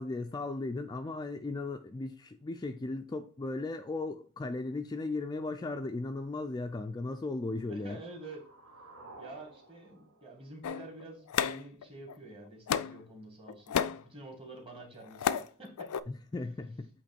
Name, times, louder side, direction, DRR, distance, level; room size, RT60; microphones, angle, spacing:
voice 1, 0.0-8.0 16.1-16.9, left 2 dB, 20° left, 0.3 m, -36 dB
sound 1, 7.4-11.4, right 2 dB, 70° right, 1.5 m, -55 dB
voice 2, 7.7-8.4 9.2-13.7 14.0-15.9, right 2 dB, 25° right, 1.8 m, -48 dB
sound 2, 10.6-12.1 12.7-13.1 13.5-14.0 14.8-15.5 15.8-16.0, left 8 dB, 90° left, 0.4 m, -32 dB
8.0 x 3.1 x 4.3 m
head